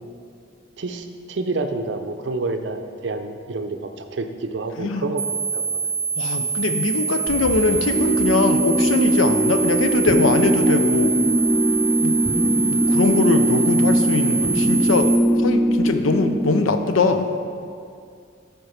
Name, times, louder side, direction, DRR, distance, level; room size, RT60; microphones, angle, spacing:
voice 1, 0.8-5.3 5.5-5.6, right 3 dB, 60° right, 7 dB, 0.5 m, -28 dB
sound 1, 5.2-15.2, right 5 dB, 25° right, 0.7 m, -25 dB
voice 2, 6.2-11.1 12.0-12.2 12.4-15.1 15.4-17.3, left 3 dB, 85° left, 8 dB, 0.5 m, -22 dB
sound 2, 7.3-16.6, left 1 dB, 70° left, 1.5 m, -41 dB
sound 3, 7.9-16.6, equal, ahead, 0.4 m, -20 dB
7.9 x 4.5 x 5.7 m, 2.3 s
head